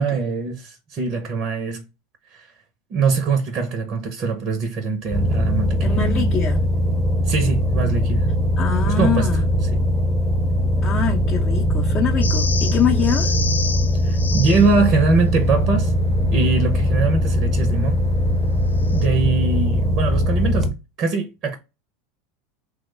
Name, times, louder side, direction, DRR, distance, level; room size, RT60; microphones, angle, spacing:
voice 1, 0.0-1.9 2.3-2.5 2.9-6.3 7.2-8.3 8.9-9.3 9.7-9.8 14.0-15.9 16.3-18.0 18.9-21.6, right 4 dB, 45° right, 0.6 m, -22 dB
sound 1, 5.1-20.7, equal, 5° right, 0.6 m, -20 dB
voice 2, 5.8-6.6 8.6-9.4 10.8-13.3, left 8 dB, 40° left, 0.6 m, -24 dB
sound 2, 12.2-14.7 18.8-19.0, left 4 dB, 90° left, 0.3 m, -29 dB
3.2 x 2.1 x 3.1 m
hypercardioid pair, 85°, 0 cm